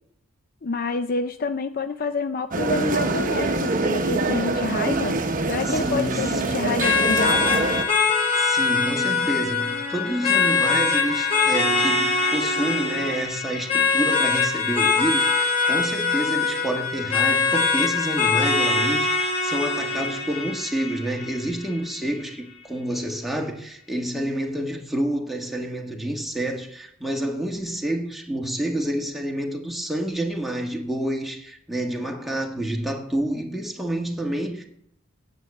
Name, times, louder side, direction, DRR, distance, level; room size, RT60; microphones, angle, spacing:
voice 1, 0.6-5.2 5.5-7.6, left 4 dB, 45° left, 0.5 m, -28 dB
sound 1, 2.5-7.8, right 2 dB, 40° right, 0.9 m, -24 dB
voice 2, 5.7-6.6 8.3-34.6, right 1 dB, ahead, 1.5 m, -28 dB
sound 2, 6.8-21.8, left 4 dB, 30° left, 2.1 m, -23 dB
Wind instrument woodwind instrument, 9.5-13.1, left 4 dB, 75° left, 1.8 m, -40 dB
9.5 x 8.3 x 7.7 m
head